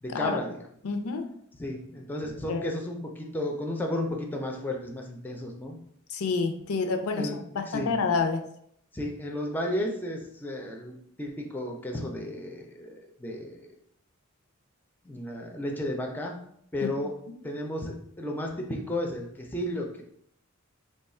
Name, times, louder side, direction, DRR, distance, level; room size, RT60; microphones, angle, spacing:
voice 1, 0.0-0.6 1.6-5.8 7.1-7.9 8.9-13.7 15.0-16.4 16.7-17.2 17.4-20.0, left 1 dB, 10° left, 1 dB, 0.4 m, -33 dB
voice 2, 0.8-1.2 2.5-2.7 6.1-7.3 7.6-8.4 16.8-16.9, left 4 dB, 80° left, 6 dB, 0.5 m, -28 dB
3.0 x 2.3 x 4.2 m, 0.69 s
head